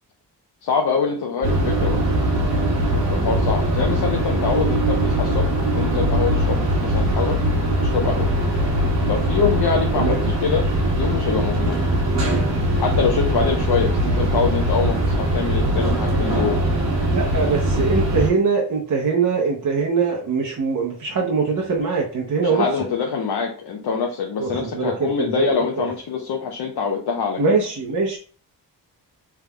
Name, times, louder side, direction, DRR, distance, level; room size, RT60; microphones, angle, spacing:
voice 1, 0.6-2.0 2.9-7.4 7.8-8.3 9.0-10.7 10.9-11.8 12.8-16.6 22.4-27.4, left 5 dB, 65° left, 1 dB, 0.7 m, -24 dB
sound 1, 1.4-18.3, right 1 dB, 80° right, 1.5 m, -21 dB
voice 2, 9.9-10.3 17.1-22.7 24.4-25.5 27.4-28.2, right 4 dB, 45° right, -1 dB, 0.8 m, -22 dB
3.5 x 3.4 x 2.2 m, 0.42 s
cardioid pair, 60°, 43 cm